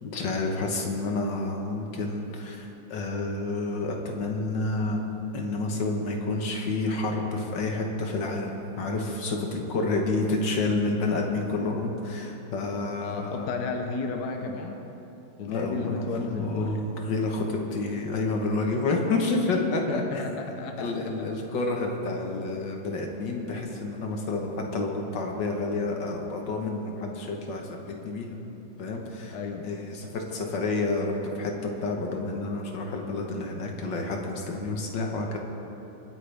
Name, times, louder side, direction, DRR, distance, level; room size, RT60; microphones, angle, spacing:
voice 1, 0.0-5.0 5.3-13.5 15.5-20.0 20.8-28.4 28.8-29.4 29.6-31.5 31.8-35.4, left 2 dB, 85° left, 1 dB, 2.1 m, -29 dB
voice 2, 13.0-14.8 15.4-16.9 19.9-21.3 29.3-29.7, left 4 dB, 65° left, 4 dB, 1.4 m, -33 dB
25.0 x 9.3 x 3.5 m, 3.0 s
omnidirectional pair, 1.9 m